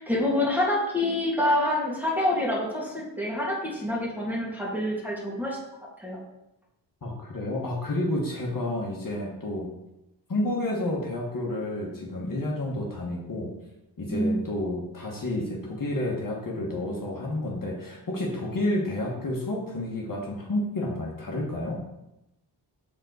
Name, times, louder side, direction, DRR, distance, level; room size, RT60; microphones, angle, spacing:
voice 1, 0.0-5.6 6.0-6.2 14.1-14.4, left 1 dB, 5° right, -4 dB, 2.2 m, -26 dB
voice 2, 7.0-9.7 10.3-13.5 14.0-21.8, left 1 dB, 45° left, -2 dB, 1.5 m, -30 dB
6.1 x 4.3 x 4.0 m, 0.89 s
cardioid pair, 50°, 47 cm